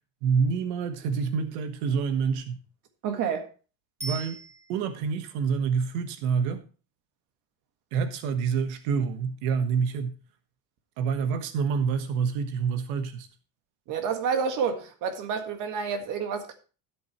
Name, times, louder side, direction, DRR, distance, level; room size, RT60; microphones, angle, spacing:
voice 1, 0.2-2.6 4.0-4.4 4.7-6.6 7.9-10.1 11.0-13.3, right 6 dB, 90° right, 1.3 m, -27 dB
voice 2, 3.0-3.5 13.9-16.5, right 6 dB, 50° right, 1.8 m, -29 dB
Bicycle bell, 4.0-5.1 14.2-14.3, right 2 dB, 5° right, 1.8 m, -40 dB
13.5 x 8.0 x 3.1 m
cardioid pair, 170°, 41 cm